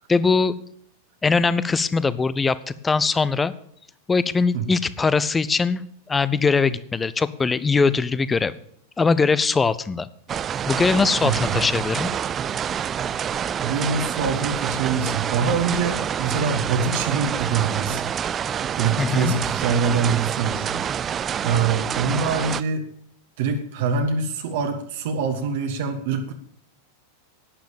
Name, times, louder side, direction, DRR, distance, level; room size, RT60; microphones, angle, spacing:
voice 1, 0.1-0.5 1.2-3.5 4.1-8.5 9.0-10.1 10.7-12.1 19.0-19.3, left 4 dB, 15° left, 17 dB, 0.7 m, -21 dB
sound 1, 10.3-22.6, right 8 dB, 25° right, 0.4 m, -27 dB
voice 2, 11.2-11.6 13.6-18.0 18.7-20.7 21.4-22.9 23.4-26.3, right 5 dB, 55° right, 5 dB, 1.4 m, -24 dB
11.5 x 9.3 x 7.2 m, 0.66 s
figure-of-eight pair, 90°, 0 cm